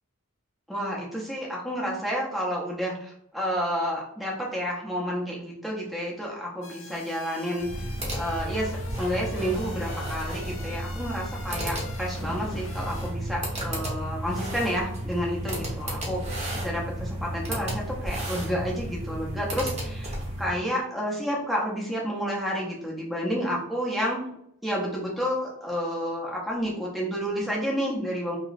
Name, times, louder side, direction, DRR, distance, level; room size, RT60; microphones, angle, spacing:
voice 1, 0.7-24.2 24.6-28.4, equal, ahead, -4 dB, 0.6 m, -30 dB
sound 1, 6.6-13.1, left 3 dB, 60° left, 0.5 m, -45 dB
sound 2, 7.6-20.6, right 1 dB, 30° right, 0.8 m, -33 dB
3.0 x 3.0 x 2.4 m, 0.74 s
head